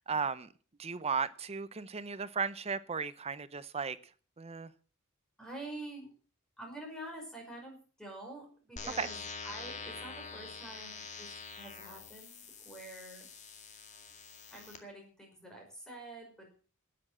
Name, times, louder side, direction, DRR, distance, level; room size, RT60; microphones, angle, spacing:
voice 1, 0.1-0.5 0.8-4.0 4.4-4.7 9.0-9.1, right 5 dB, 30° right, 15 dB, 0.7 m, -35 dB
voice 2, 5.4-6.1 6.6-13.2 14.5-16.5, right 1 dB, 5° left, 0 dB, 5.5 m, -47 dB
sound 1, 8.8-14.8, left 5 dB, 35° left, 2.1 m, -46 dB
13.0 x 9.8 x 7.5 m, 0.40 s
head